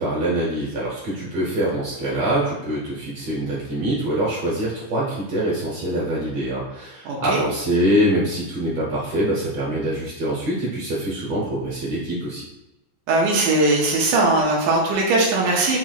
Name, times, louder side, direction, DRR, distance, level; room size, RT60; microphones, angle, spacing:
voice 1, 0.0-12.4, right 1 dB, 65° right, -6 dB, 1.8 m, -24 dB
voice 2, 7.1-7.4 13.1-15.8, right 2 dB, 85° right, -3 dB, 2.2 m, -19 dB
5.9 x 2.8 x 2.4 m, 0.95 s
omnidirectional pair, 3.6 m